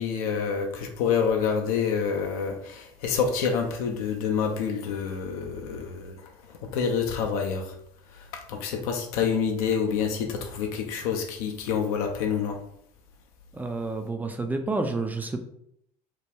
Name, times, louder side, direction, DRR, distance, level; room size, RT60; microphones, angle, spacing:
voice 1, 0.0-7.8 8.1-12.6, left 6 dB, 60° left, 0.4 m, -28 dB
voice 2, 13.5-15.4, right 3 dB, 10° right, 0.3 m, -29 dB
2.7 x 2.1 x 3.4 m
figure-of-eight pair, 60°, 21 cm